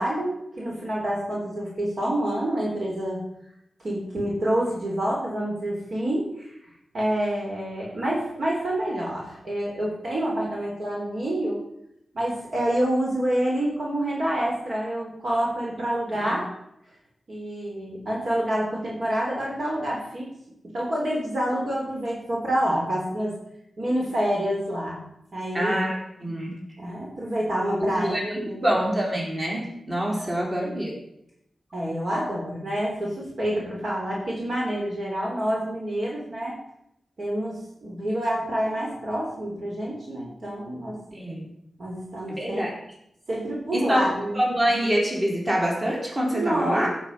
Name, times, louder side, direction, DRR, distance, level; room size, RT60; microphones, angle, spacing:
voice 1, 0.0-3.2 3.8-6.5 6.9-11.6 12.1-16.5 17.3-20.3 20.6-23.4 23.8-25.0 25.3-25.8 26.8-28.7 30.2-30.6 31.7-36.6 37.2-41.0 41.8-42.7 43.3-44.4 46.3-46.9, right 1 dB, 55° right, -4 dB, 3.4 m, -27 dB
voice 2, 25.5-26.5 27.8-31.0 41.1-41.5 42.4-42.7 43.7-44.1 44.3-46.9, equal, 30° right, -3 dB, 4.5 m, -26 dB
15.5 x 7.4 x 5.4 m, 0.78 s
wide cardioid pair, 125°, 0 cm